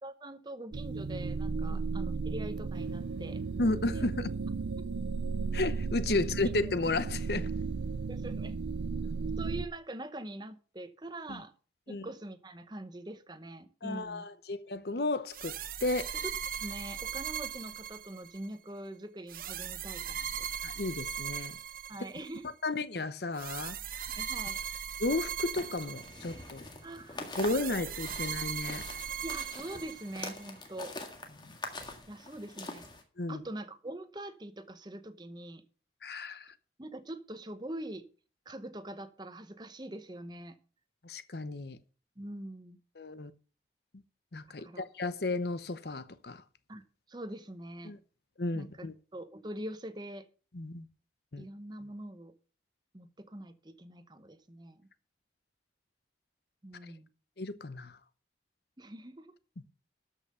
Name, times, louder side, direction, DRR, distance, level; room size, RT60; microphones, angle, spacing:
voice 1, 0.0-3.4 3.9-4.1 4.8-4.9 8.1-8.6 9.4-11.5 11.9-14.3 16.1-16.3 16.6-20.5 21.9-22.4 24.2-24.6 26.8-27.8 29.2-30.9 32.1-32.9 33.3-35.6 36.8-38.0 38.5-40.6 42.2-42.8 44.6-44.9 46.7-46.8 47.1-47.9 48.5-48.9 49.1-50.3 51.4-52.3 52.9-54.9 56.6-57.1 58.8-59.3, right 1 dB, 25° right, 0.9 m, -43 dB
sound 1, 0.7-9.7, right 4 dB, 75° right, 0.5 m, -35 dB
voice 2, 3.6-4.3 5.5-7.5 11.3-11.4 11.9-12.1 13.8-15.6 15.8-16.1 20.6-21.6 22.0-22.1 22.6-23.8 25.0-26.6 27.4-28.8 31.4-31.5 33.2-33.4 36.0-36.5 41.0-41.8 43.0-43.3 44.3-46.4 47.8-48.0 48.4-48.9 50.5-50.9 51.3-51.4 57.4-58.0, left 2 dB, 60° left, 0.8 m, -33 dB
sound 2, 15.3-18.5 19.3-22.4 23.4-26.5 27.3-30.4, right 8 dB, 50° right, 0.8 m, -39 dB
sound 3, 25.5-33.0, left 2 dB, 25° left, 1.8 m, -45 dB
13.0 x 5.7 x 6.7 m
head